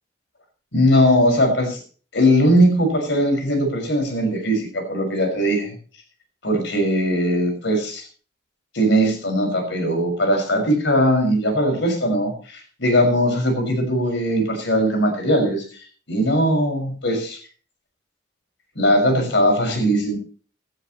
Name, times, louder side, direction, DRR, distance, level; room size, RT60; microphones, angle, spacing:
voice 1, 0.7-1.8 2.1-5.7 6.4-8.0 8.7-15.6 16.1-17.4 18.8-20.2, equal, 70° left, 5 dB, 5.9 m, -19 dB
17.5 x 13.0 x 3.1 m, 0.40 s
head